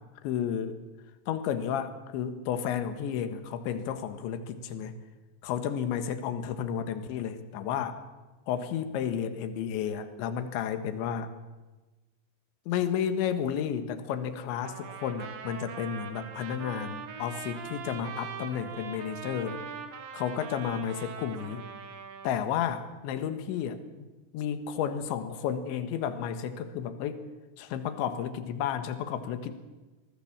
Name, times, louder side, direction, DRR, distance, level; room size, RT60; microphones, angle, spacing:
voice 1, 0.2-0.8 1.3-4.9 5.4-8.0 8.5-11.3 12.7-19.6 20.1-21.6 22.2-24.1 24.3-27.2 27.6-29.6, left 8 dB, 80° left, 9 dB, 3.8 m, -32 dB
Trumpet, 14.6-22.3, right 7 dB, 75° right, 4.3 m, -42 dB
25.0 x 20.0 x 7.3 m, 1.2 s
omnidirectional pair, 5.3 m